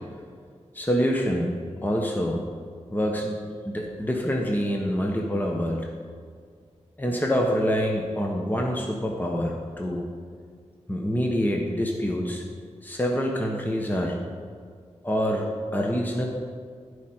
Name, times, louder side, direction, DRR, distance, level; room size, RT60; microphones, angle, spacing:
voice 1, 0.7-1.5 1.8-2.4 2.9-5.8 7.0-10.1 10.9-12.4 12.8-14.2 15.0-16.2, equal, 15° left, 0 dB, 1.2 m, -26 dB
15.0 x 5.0 x 4.5 m, 2.1 s
cardioid pair, 50°, 12 cm